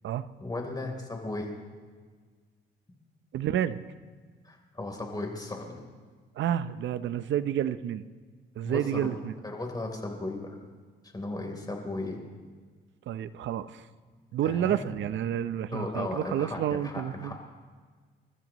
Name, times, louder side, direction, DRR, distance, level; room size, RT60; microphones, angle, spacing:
voice 1, 0.4-1.6 4.4-5.8 8.6-10.6 11.1-12.2 14.4-14.9 15.7-17.5, left 2 dB, 20° left, 2 dB, 3.6 m, -36 dB
voice 2, 3.3-3.8 6.4-8.0 8.6-9.3 13.1-13.9 14.3-17.5, right 10 dB, 70° right, 13 dB, 0.7 m, -30 dB
29.0 x 13.5 x 3.1 m, 1.5 s
cardioid pair, 90°, 20 cm